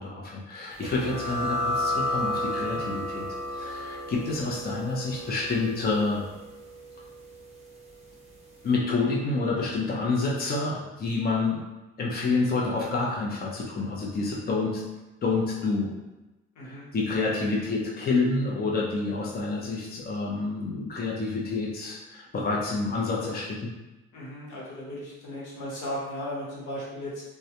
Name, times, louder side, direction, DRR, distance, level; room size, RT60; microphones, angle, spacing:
voice 1, 0.0-6.3 8.6-11.6 12.0-14.8 15.2-15.9 16.6-23.7, left 3 dB, 30° left, -3 dB, 0.6 m, -28 dB
sound 1, 0.8-8.1, left 1 dB, 20° right, 0.6 m, -32 dB
voice 2, 24.1-27.2, equal, 90° left, -6 dB, 0.9 m, -36 dB
2.2 x 2.1 x 2.8 m, 1.1 s
cardioid pair, 90°, 30 cm